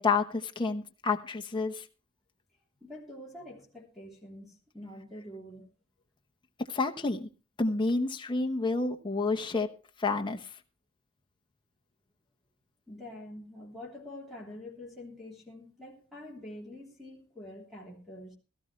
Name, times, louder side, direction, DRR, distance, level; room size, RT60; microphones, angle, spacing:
voice 1, 0.0-1.8 6.7-7.3 7.6-9.7 10.0-10.4, left 3 dB, 25° left, 1.1 m, -29 dB
voice 2, 2.8-5.7 12.9-18.4, left 1 dB, ahead, 3.2 m, -46 dB
17.5 x 13.0 x 3.2 m
head